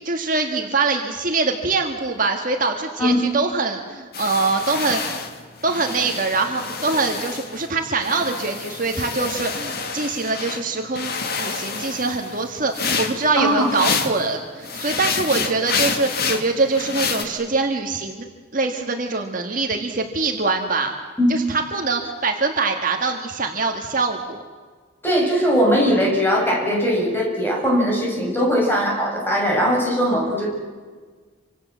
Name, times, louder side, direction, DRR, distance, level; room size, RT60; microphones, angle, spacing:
voice 1, 0.0-5.2 5.6-18.3 18.5-20.9 21.3-24.4, right 3 dB, 40° right, 3 dB, 1.8 m, -23 dB
sound 1, 4.1-7.7 8.0-10.6 11.0-14.3 14.6-17.2, left 5 dB, 50° left, 2.2 m, -28 dB
voice 2, 13.4-13.7 21.2-21.3 25.0-30.5, equal, 10° left, -2 dB, 7.0 m, -20 dB
28.0 x 25.5 x 7.5 m, 1.5 s
head